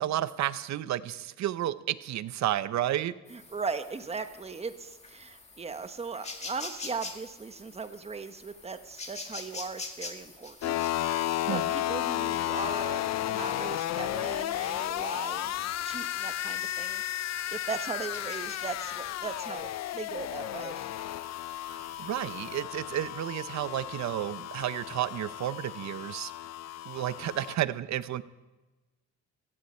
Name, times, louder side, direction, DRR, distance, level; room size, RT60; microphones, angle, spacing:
voice 1, 0.0-3.1 11.5-11.7 21.7-26.3 26.8-28.2, right 12 dB, 65° right, 16 dB, 0.7 m, -32 dB
sound 1, 3.3-22.6, left 3 dB, 20° left, 2.0 m, -47 dB
voice 2, 3.3-10.7 11.1-20.9, right 4 dB, 20° right, 9 dB, 1.0 m, -38 dB
sound 2, 10.6-27.6, left 13 dB, 60° left, 0.5 m, -33 dB
16.5 x 14.5 x 4.3 m, 1.2 s
cardioid pair, 90°, 30 cm